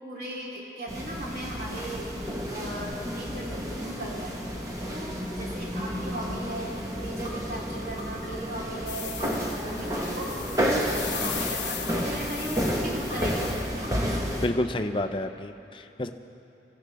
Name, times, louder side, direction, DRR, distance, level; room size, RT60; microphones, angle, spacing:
voice 1, 0.0-4.4 4.8-9.1 9.5-14.0, right 1 dB, 55° right, -5 dB, 3.7 m, -38 dB
sound 1, 0.9-14.5, equal, 20° right, 1.2 m, -31 dB
sound 2, 7.2-7.3 8.0-8.5 9.2-9.3 9.9-10.4 11.1-11.2 11.9-12.4 13.1-13.2 13.8-14.3, equal, 35° right, 2.7 m, -42 dB
sound 3, 8.9-13.8, left 11 dB, 90° left, 0.8 m, -38 dB
voice 2, 14.4-16.1, left 1 dB, 30° left, 7 dB, 0.5 m, -29 dB
25.0 x 15.0 x 3.5 m, 2.8 s
head